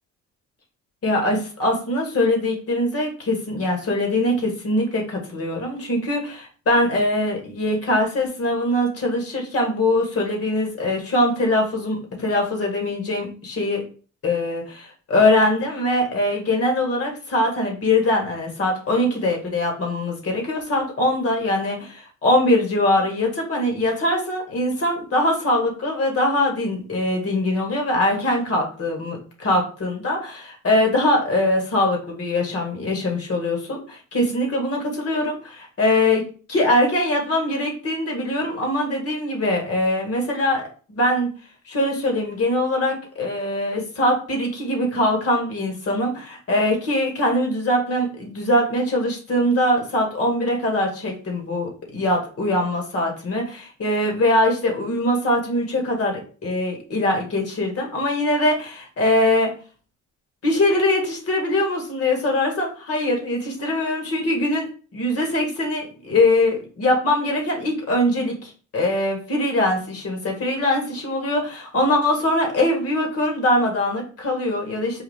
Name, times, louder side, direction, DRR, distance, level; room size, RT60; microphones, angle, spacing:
voice 1, 1.0-13.8 14.2-40.6 40.9-41.3 41.7-59.5 60.4-75.0, left 1 dB, 50° left, 1 dB, 1.9 m, -22 dB
4.8 x 2.5 x 3.5 m, 0.39 s
cardioid pair, 90°, 30 cm